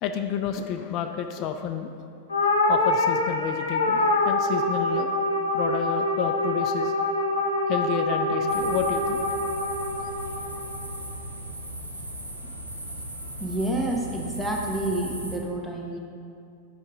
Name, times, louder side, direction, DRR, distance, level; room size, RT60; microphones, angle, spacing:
voice 1, 0.0-1.9 2.7-5.1 5.5-6.9 7.7-9.2, left 8 dB, 40° left, 6 dB, 0.4 m, -30 dB
sound 1, 2.3-10.9, left 2 dB, 75° left, 0.6 m, -25 dB
sound 2, 8.5-15.4, right 1 dB, 90° right, 0.7 m, -37 dB
voice 2, 13.4-16.0, right 1 dB, 5° right, -1 dB, 0.9 m, -29 dB
5.8 x 5.2 x 3.8 m, 2.4 s
figure-of-eight pair, 95°, 0 cm